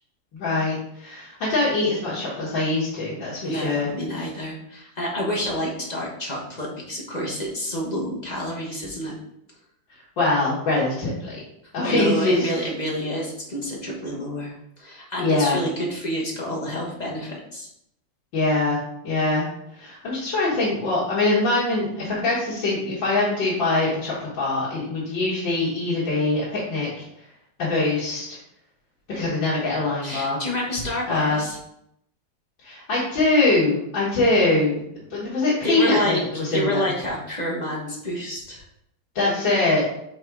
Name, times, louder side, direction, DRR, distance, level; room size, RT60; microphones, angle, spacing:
voice 1, 0.3-3.9 10.2-11.4 11.7-12.5 15.2-15.6 18.3-18.8 19.0-19.5 19.7-27.0 27.6-28.4 29.1-30.4 31.1-31.4 32.6-34.8 35.1-36.8 39.2-39.8, left 2 dB, 85° left, -9 dB, 2.4 m, -23 dB
voice 2, 3.4-9.2 11.8-17.7 30.0-31.6 35.6-38.6, equal, 25° left, -3 dB, 1.1 m, -28 dB
5.6 x 3.7 x 4.7 m, 0.76 s
omnidirectional pair, 2.0 m